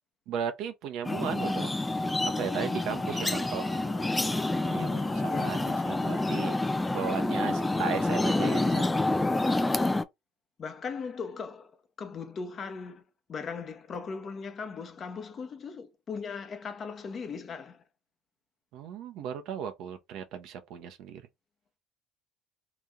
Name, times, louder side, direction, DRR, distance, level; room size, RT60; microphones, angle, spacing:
voice 1, 0.3-1.7 2.2-3.8 4.7-6.6 6.9-8.8 18.7-21.2, right 8 dB, 65° right, 0.7 m, -36 dB
sound 1, 1.1-10.0, left 2 dB, 15° left, 0.4 m, -28 dB
Brass instrument, 1.5-5.8, left 3 dB, 90° left, 1.1 m, -47 dB
voice 2, 5.2-5.9 10.6-11.7 12.0-13.0 13.3-17.8, left 5 dB, 45° left, 0.8 m, -38 dB
3.0 x 2.6 x 3.6 m
hypercardioid pair, 70°, 0 cm